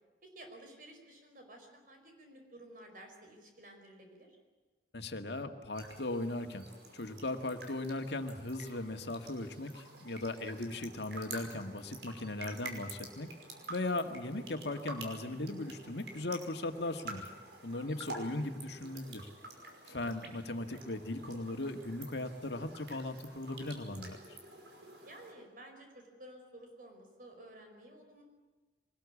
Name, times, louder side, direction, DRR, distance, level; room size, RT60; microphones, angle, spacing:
voice 1, 0.2-4.4 17.7-17.9 25.0-28.2, right 1 dB, 50° right, 3 dB, 5.3 m, -53 dB
voice 2, 4.9-6.7 6.9-13.3 13.7-17.3 17.6-19.3 19.9-24.4, left 2 dB, 75° left, 6 dB, 1.9 m, -38 dB
sound 1, 5.7-25.3, right 2 dB, 85° right, 5.5 m, -49 dB
24.0 x 20.5 x 8.5 m, 1.3 s
head